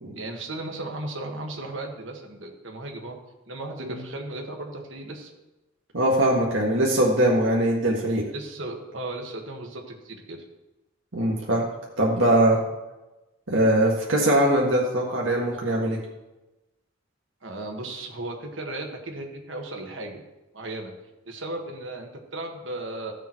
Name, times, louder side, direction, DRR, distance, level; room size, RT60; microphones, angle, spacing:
voice 1, 0.2-3.2 3.5-5.3 8.3-10.4 17.4-20.2 20.5-20.9 21.3-23.1, right 2 dB, 75° right, 2 dB, 1.8 m, -35 dB
voice 2, 5.9-8.2 11.1-11.7 12.0-12.6 13.5-16.0, right 1 dB, 90° right, -2 dB, 1.8 m, -21 dB
14.0 x 7.1 x 4.6 m, 1.0 s
head